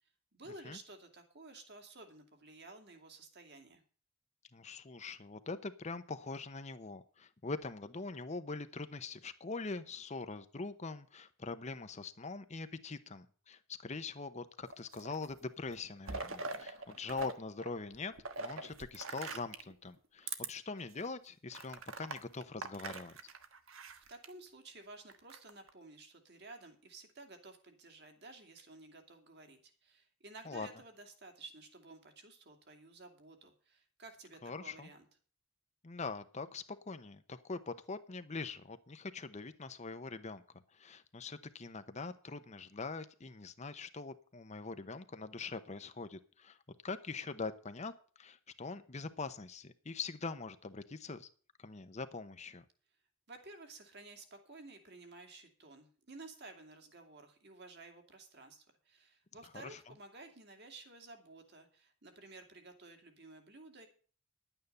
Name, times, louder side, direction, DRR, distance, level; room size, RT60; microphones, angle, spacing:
voice 1, 0.3-3.8 24.1-35.1 53.3-63.9, right 2 dB, 50° right, 5 dB, 2.6 m, -54 dB
voice 2, 4.5-23.1 30.4-30.7 34.4-34.9 35.8-40.4 40.7-46.6 46.8-47.9 48.2-51.3 51.6-52.6 59.6-59.8, left 3 dB, 35° left, 11 dB, 0.8 m, -43 dB
sound 1, 14.7-15.3 15.7-17.3 17.6-19.7 20.2-20.5 20.9-21.1 21.5-24.3 25.1-25.7, right 4 dB, 70° right, 1.4 m, -43 dB
11.0 x 9.1 x 6.7 m, 0.41 s
head